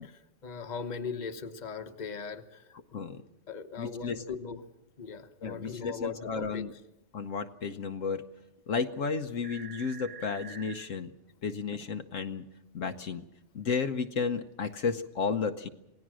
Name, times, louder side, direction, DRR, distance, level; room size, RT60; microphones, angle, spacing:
voice 1, 0.0-2.7 3.5-4.6 5.0-6.6, left 5 dB, 35° left, 6 dB, 1.2 m, -39 dB
voice 2, 3.8-4.2 5.4-6.7 7.1-8.2 8.7-11.1 11.4-12.4 12.7-13.3 13.5-15.7, left 5 dB, 75° left, 7 dB, 1.3 m, -33 dB
sound 1, 9.4-10.7 11.7-11.8, right 6 dB, 60° right, 6.6 m, -46 dB
27.0 x 18.5 x 6.3 m, 0.88 s
omnidirectional pair, 1.3 m